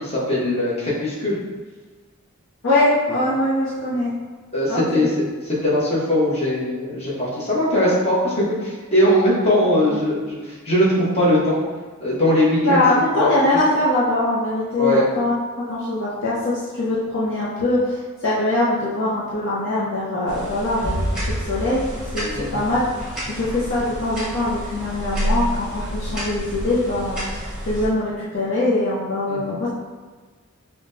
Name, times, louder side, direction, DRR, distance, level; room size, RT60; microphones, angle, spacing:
voice 1, 0.0-1.4 4.5-5.1 5.5-11.6 12.0-12.8 13.1-13.3 14.8-15.0 22.3-22.6 29.3-29.6, left 1 dB, 30° left, -7 dB, 1.1 m, -20 dB
voice 2, 2.6-4.1 4.7-5.1 9.9-10.0 12.6-21.8 22.1-22.8 23.3-29.7, left 2 dB, 55° left, -8 dB, 0.7 m, -22 dB
sound 1, 20.3-27.9, equal, 5° right, 1.0 m, -29 dB
5.6 x 2.2 x 2.7 m, 1.4 s
head